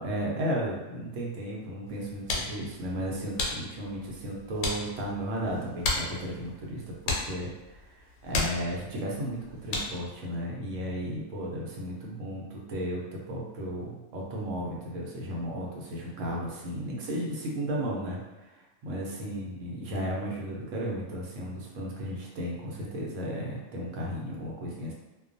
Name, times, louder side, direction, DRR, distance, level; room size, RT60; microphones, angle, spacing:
voice 1, 0.0-18.5 18.8-24.9, equal, 85° right, -3 dB, 1.0 m, -34 dB
sound 1, 1.9-10.2, left 3 dB, 80° left, 0.9 m, -35 dB
2.3 x 2.2 x 2.5 m, 1.1 s
omnidirectional pair, 1.3 m